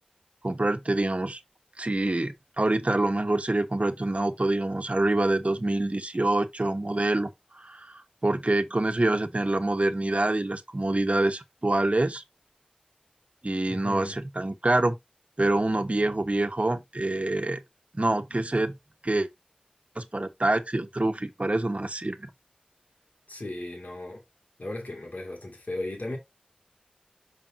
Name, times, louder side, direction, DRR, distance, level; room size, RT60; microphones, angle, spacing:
voice 1, 0.4-1.4 1.8-7.3 7.5-12.2 13.4-15.0 15.4-17.6 17.9-18.8 19.0-19.3 20.0-22.3, right 2 dB, 55° right, 1.1 m, -26 dB
voice 2, 13.7-14.2 23.3-24.2 24.6-26.2, left 1 dB, 90° left, 2.4 m, -36 dB
6.0 x 5.2 x 3.8 m
wide cardioid pair, 40°, 3 cm